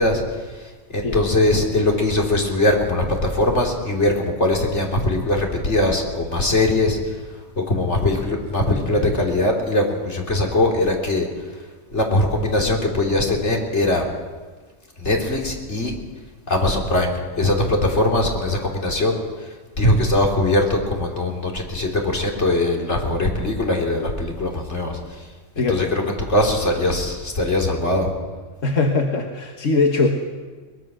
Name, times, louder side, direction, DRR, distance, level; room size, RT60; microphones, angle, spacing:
voice 1, 0.0-11.5 11.9-14.0 15.0-16.0 16.5-25.3 25.6-28.1, left 1 dB, 65° left, 0 dB, 3.5 m, -21 dB
voice 2, 25.6-25.9 28.6-30.1, left 3 dB, 90° left, 2 dB, 1.7 m, -20 dB
22.5 x 20.5 x 6.2 m, 1.4 s
omnidirectional pair, 1.3 m